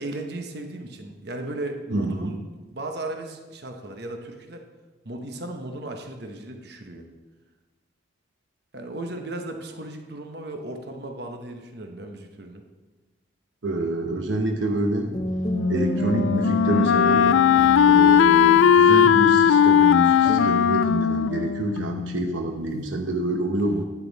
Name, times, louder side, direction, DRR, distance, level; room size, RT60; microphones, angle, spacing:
voice 1, 0.0-4.7 5.0-7.0 8.7-12.6, right 2 dB, 55° right, 4 dB, 1.1 m, -36 dB
voice 2, 1.9-2.3 13.6-15.1 15.7-17.3 17.8-23.8, right 2 dB, 80° right, 3 dB, 1.0 m, -27 dB
sound 1, 14.5-20.5, equal, 20° left, 0.6 m, -30 dB
Wind instrument woodwind instrument, 15.5-22.4, left 8 dB, 80° left, 0.3 m, -18 dB
11.5 x 8.4 x 4.1 m, 1.2 s
head